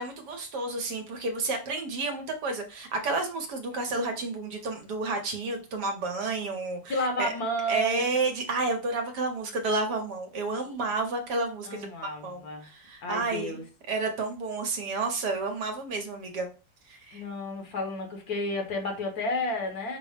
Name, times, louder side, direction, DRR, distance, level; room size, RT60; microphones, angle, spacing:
voice 1, 0.0-7.3 7.7-16.5 16.9-17.2, right 3 dB, 70° right, 4 dB, 1.3 m, -31 dB
voice 2, 6.9-8.1 10.5-10.7 11.6-12.7 13.0-13.6 17.1-20.0, left 1 dB, 60° left, 3 dB, 1.4 m, -31 dB
5.5 x 2.0 x 4.8 m, 0.33 s
omnidirectional pair, 1.9 m